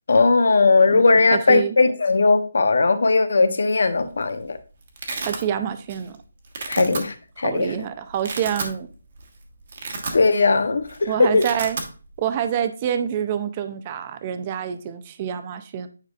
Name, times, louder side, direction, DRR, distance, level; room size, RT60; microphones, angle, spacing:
voice 1, 0.1-4.6 6.7-7.7 10.1-11.4, left 3 dB, 65° left, 0.9 m, -18 dB
voice 2, 0.9-1.8 5.2-6.2 6.8-7.0 7.4-8.9 11.1-11.8 12.2-15.9, right 9 dB, 20° right, 0.4 m, -27 dB
Domestic sounds home sounds, 4.0-4.3 4.6-5.4 5.9-6.2 6.4-7.0 7.6-7.7 8.1-8.8 9.2-9.3 9.6-10.5 10.8-11.0 11.2-11.9, right 4 dB, 40° right, 1.2 m, -31 dB
9.3 x 4.8 x 2.4 m
hypercardioid pair, 175°, 0 cm